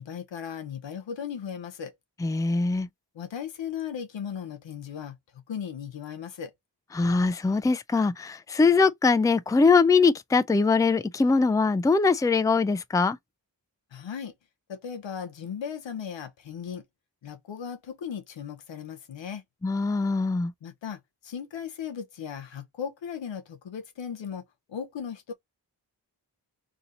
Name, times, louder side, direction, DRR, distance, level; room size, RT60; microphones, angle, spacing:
voice 1, 0.0-1.9 3.1-5.2 5.5-6.5 13.9-14.3 14.7-16.8 17.2-19.4 20.6-24.4 24.7-25.3, left 8 dB, 85° left, 0.8 m, -37 dB
voice 2, 2.2-2.9 6.9-13.2 19.6-20.5, left 4 dB, 10° left, 0.4 m, -22 dB
2.8 x 2.7 x 3.8 m
cardioid pair, 40°, 44 cm